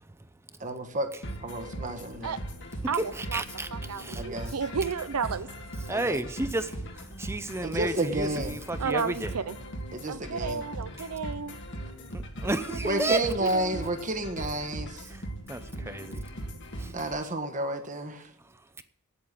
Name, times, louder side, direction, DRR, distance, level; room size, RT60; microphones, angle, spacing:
voice 1, 0.1-0.7 1.1-1.2 2.8-4.5 5.8-9.4 10.9-11.1 12.1-13.2 15.0-16.3 16.8-16.9 18.4-18.8, right 2 dB, 10° right, 0.7 m, -33 dB
voice 2, 0.6-1.1 1.4-2.4 4.2-4.5 5.9-6.2 7.6-8.6 9.9-10.6 12.9-15.1 16.9-18.3, right 1 dB, 35° right, 1.4 m, -31 dB
sound 1, 1.2-17.2, right 1 dB, 55° left, 1.9 m, -39 dB
voice 3, 2.9-3.4 3.7-5.5 8.8-9.5 10.1-11.6 12.7-13.9, right 5 dB, 85° right, 0.7 m, -32 dB
9.3 x 8.6 x 9.6 m
head